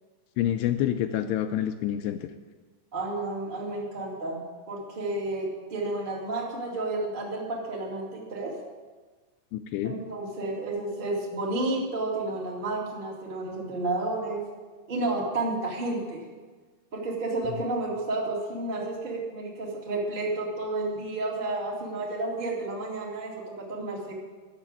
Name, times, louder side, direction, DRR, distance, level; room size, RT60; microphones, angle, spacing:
voice 1, 0.4-2.3 9.5-9.9, left 11 dB, 85° left, 8 dB, 2.4 m, -27 dB
voice 2, 2.9-8.6 9.8-14.5 14.9-16.2 16.9-24.1, right 2 dB, 35° right, -3 dB, 0.7 m, -31 dB
11.5 x 7.2 x 8.9 m, 1.4 s
omnidirectional pair, 5.2 m